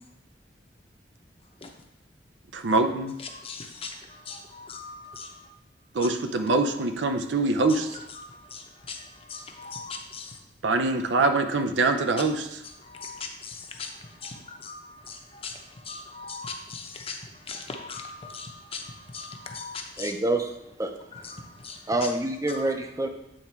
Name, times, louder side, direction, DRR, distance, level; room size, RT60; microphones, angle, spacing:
voice 1, 2.5-3.1 5.9-7.9 10.6-12.6, right 3 dB, 80° right, 7 dB, 0.6 m, -24 dB
voice 2, 3.2-5.5 7.7-10.4 12.6-20.1 21.1-22.1 22.5-22.6, left 4 dB, 35° left, 3 dB, 0.8 m, -40 dB
voice 3, 20.0-20.5 20.8-20.9 21.9-23.1, right 2 dB, 20° right, 5 dB, 0.6 m, -26 dB
8.6 x 3.5 x 4.4 m, 0.86 s
head